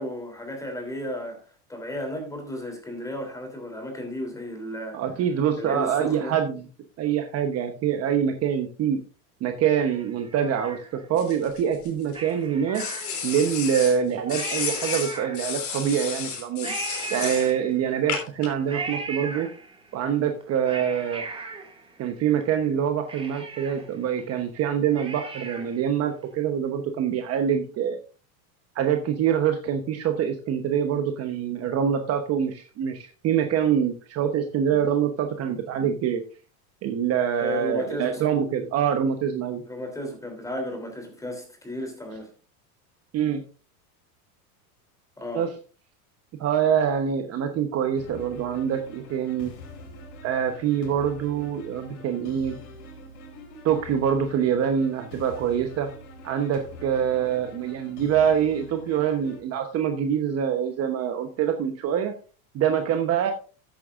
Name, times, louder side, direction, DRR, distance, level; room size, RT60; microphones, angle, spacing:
voice 1, 0.0-5.0 5.6-6.4 37.4-38.2 39.6-42.3 45.2-45.5, left 1 dB, 5° left, 3.3 m, -34 dB
voice 2, 4.9-6.6 7.0-9.0 9.4-10.8 11.1-12.8 13.2-16.7 17.1-19.5 19.9-21.2 22.0-28.0 28.7-36.2 36.8-39.6 43.1-43.4 45.3-45.5 46.4-49.5 50.2-52.6 53.6-55.9 56.2-62.1 62.5-63.3, right 8 dB, 35° right, 1.0 m, -25 dB
Cat, 9.8-11.3 12.1-13.5 14.0-14.1 14.3-15.8 16.6-18.0 18.7-19.9 20.4-22.4 22.7-22.8 23.1-25.9 26.2-26.3, right 3 dB, 10° right, 2.1 m, -38 dB
sound 1, 11.2-12.2 12.7-14.0 14.3-17.5 18.1-18.5, left 7 dB, 40° left, 3.3 m, -32 dB
sound 2, 48.0-59.4, left 1 dB, 85° left, 3.7 m, -44 dB
13.5 x 8.9 x 2.5 m
supercardioid pair, 135°, 44 cm